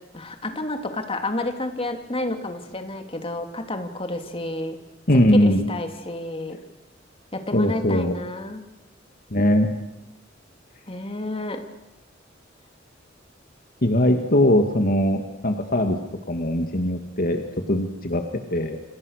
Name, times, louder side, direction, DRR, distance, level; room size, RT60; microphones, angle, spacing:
voice 1, 0.1-4.8 5.3-6.6 7.3-8.6 10.9-11.6, left 2 dB, 30° left, 5 dB, 2.9 m, -30 dB
voice 2, 5.1-5.7 7.5-8.1 9.3-9.7 13.8-16.0 16.3-18.2 18.5-18.8, left 1 dB, 50° left, 5 dB, 2.1 m, -20 dB
28.5 x 27.5 x 6.6 m, 0.95 s
head